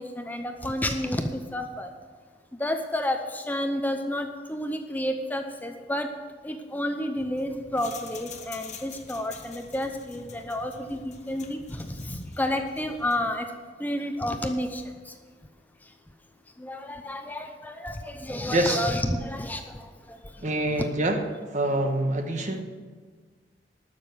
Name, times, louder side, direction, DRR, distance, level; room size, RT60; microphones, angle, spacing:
voice 1, 0.0-1.9 2.6-6.1 6.4-13.5 13.8-15.1 16.6-20.2 20.8-20.9, left 1 dB, 10° left, 6 dB, 0.7 m, -30 dB
sound 1, 7.2-13.3, left 3 dB, 45° left, 1.2 m, -44 dB
voice 2, 18.5-18.8 20.4-21.2 21.5-22.6, right 1 dB, 45° right, 5 dB, 1.3 m, -25 dB
12.5 x 6.5 x 7.9 m, 1.5 s
head